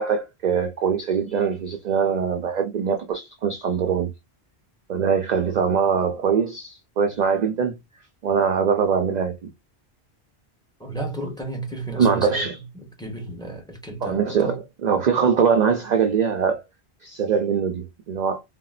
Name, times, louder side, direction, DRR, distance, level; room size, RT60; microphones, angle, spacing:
voice 1, 0.0-4.1 4.9-7.7 8.2-9.5 12.0-12.6 14.0-16.6 17.0-18.4, right 6 dB, 55° right, 0.5 m, -22 dB
voice 2, 10.8-14.6, right 2 dB, 5° left, 1.0 m, -33 dB
3.9 x 2.1 x 2.3 m
omnidirectional pair, 1.1 m